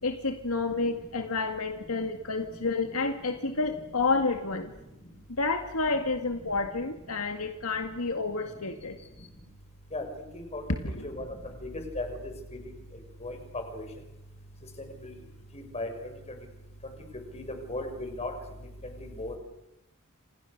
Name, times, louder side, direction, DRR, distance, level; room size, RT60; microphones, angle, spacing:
voice 1, 0.0-4.7 5.3-9.0 10.8-11.1, left 3 dB, 75° left, 6 dB, 2.1 m, -30 dB
voice 2, 17.7-18.3 19.0-19.3, left 2 dB, 30° left, 5 dB, 6.0 m, -34 dB
29.0 x 27.5 x 6.7 m, 0.91 s
head